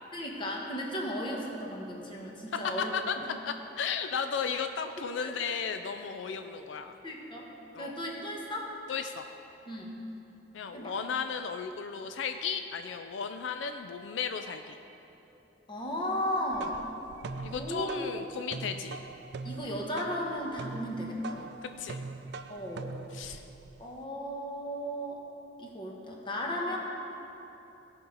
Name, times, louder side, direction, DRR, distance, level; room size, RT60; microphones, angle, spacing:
voice 1, 0.1-2.9 3.2-3.3 5.2-5.3 7.0-7.5 7.8-8.7 9.7-10.0 10.7-10.9 15.7-16.8 17.5-18.1 19.4-21.5 22.5-22.9 23.8-25.2 25.6-26.8, equal, 25° left, -1 dB, 1.3 m, -35 dB
voice 2, 2.5-3.2 3.5-7.0 7.7-8.0 8.9-9.2 10.5-14.8 17.4-19.0 21.8-22.0 23.1-23.4, left 6 dB, 85° left, 7 dB, 0.4 m, -34 dB
sound 1, 16.3-24.0, right 3 dB, 65° right, 0.4 m, -42 dB
16.0 x 5.4 x 4.0 m, 3.0 s
head